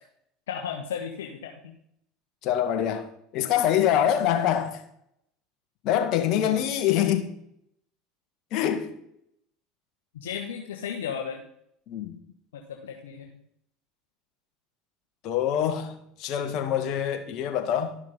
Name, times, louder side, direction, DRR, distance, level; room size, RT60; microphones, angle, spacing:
voice 1, 0.5-1.7 6.3-6.6 10.1-11.4 12.5-13.4, left 7 dB, 85° left, 1.3 m, -35 dB
voice 2, 2.4-4.8 5.8-7.3 8.5-8.9 11.9-12.1 15.2-18.0, left 10 dB, 60° left, 1.9 m, -25 dB
12.5 x 6.2 x 5.7 m
hypercardioid pair, 85°, 0 cm